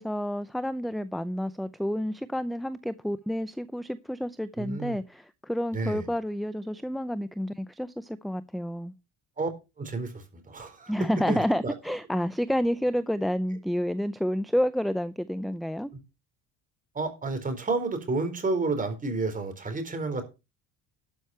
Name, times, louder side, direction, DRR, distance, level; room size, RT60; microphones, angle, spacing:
voice 1, 0.0-8.9 10.9-15.9, equal, ahead, 0.6 m, -29 dB
voice 2, 4.6-5.0 5.7-6.0 9.4-9.5 9.8-10.9 11.3-11.7 16.9-20.2, right 3 dB, 25° right, 4.1 m, -30 dB
12.5 x 6.3 x 5.7 m
cardioid pair, 105°, 32 cm